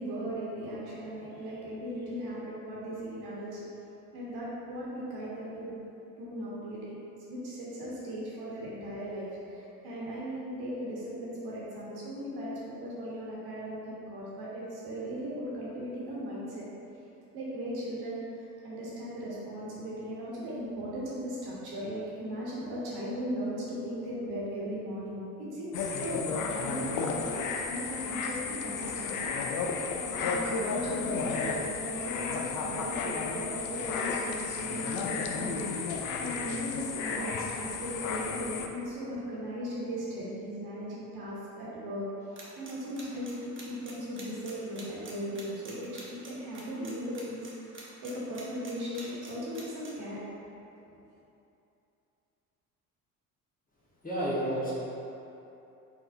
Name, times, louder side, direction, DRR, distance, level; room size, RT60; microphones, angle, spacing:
voice 1, 0.0-3.6 4.1-5.8 6.1-6.9 7.3-16.6 17.3-26.2 26.5-29.3 30.1-42.1 42.6-50.3 50.9-51.0, equal, 60° right, -7 dB, 1.2 m, -37 dB
sound 1, 25.7-38.7, left 5 dB, 45° left, 0.5 m, -33 dB
sound 2, 42.4-49.9, right 3 dB, 25° right, 1.0 m, -47 dB
voice 2, 54.0-54.7, equal, 20° left, -8 dB, 1.4 m, -30 dB
4.2 x 3.9 x 2.7 m, 2.8 s
hypercardioid pair, 55°, 44 cm